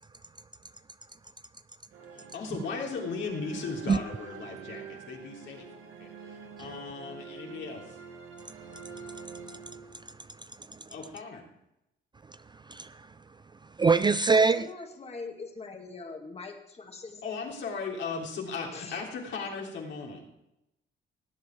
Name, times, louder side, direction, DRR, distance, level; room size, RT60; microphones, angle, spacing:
sound 1, 1.9-10.3, right 6 dB, 80° right, 2.0 m, -46 dB
voice 1, 2.1-5.6 6.0-8.0 10.9-11.4 17.2-20.2, left 4 dB, 70° left, 3.4 m, -37 dB
voice 2, 8.4-10.9 12.3-13.4 13.6-14.7, right 4 dB, 20° right, 0.4 m, -28 dB
voice 3, 14.3-17.2 18.7-19.0, left 3 dB, 30° left, 2.3 m, -42 dB
18.0 x 8.4 x 4.7 m
cardioid pair, 90°, 20 cm